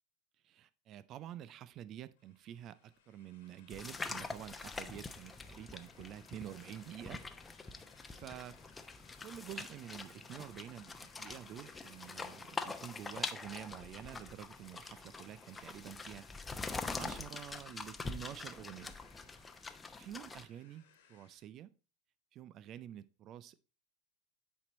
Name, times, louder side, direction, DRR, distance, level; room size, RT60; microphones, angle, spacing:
voice 1, 0.4-7.2 8.1-8.6 9.2-18.9 19.9-21.7 22.3-23.6, right 11 dB, 45° right, 0.4 m, -49 dB
sound 1, 2.2-21.5, left 7 dB, 70° left, 1.5 m, -66 dB
sound 2, 3.7-20.4, left 4 dB, 15° left, 0.8 m, -45 dB
8.5 x 4.5 x 4.1 m
figure-of-eight pair, 80°, 0 cm